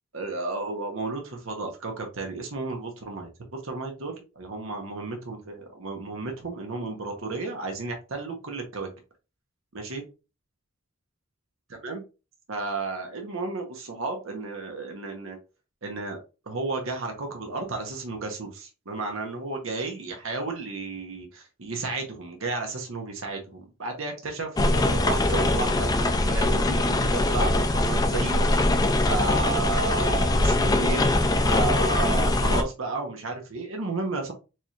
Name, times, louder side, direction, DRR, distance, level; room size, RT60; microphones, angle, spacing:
voice 1, 0.1-8.9 9.7-10.0 11.8-12.0 12.5-15.4 15.8-16.2 16.5-28.6 29.0-31.0 31.5-34.3, right 3 dB, 85° right, 3 dB, 0.9 m, -32 dB
sound 1, 24.6-32.6, left 2 dB, 20° left, 0.3 m, -22 dB
4.6 x 2.8 x 2.3 m, 0.30 s
head